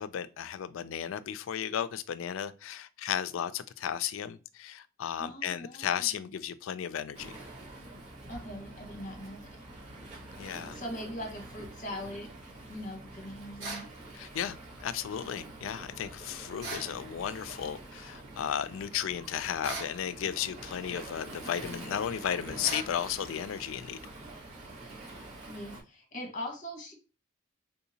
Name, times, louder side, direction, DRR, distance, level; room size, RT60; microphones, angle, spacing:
voice 1, 0.0-7.4 10.4-10.8 14.1-24.0, left 9 dB, 85° left, 0.3 m, -34 dB
voice 2, 5.2-6.1 8.3-9.6 10.7-12.3 12.7-13.9 25.4-26.9, equal, 40° left, 1.1 m, -41 dB
Waves surf, 7.1-25.8, right 2 dB, 35° right, 1.5 m, -46 dB
sound 1, 13.6-13.9 16.6-16.9 19.6-20.0 22.6-22.9, right 3 dB, 75° right, 1.5 m, -38 dB
3.6 x 2.7 x 2.7 m
head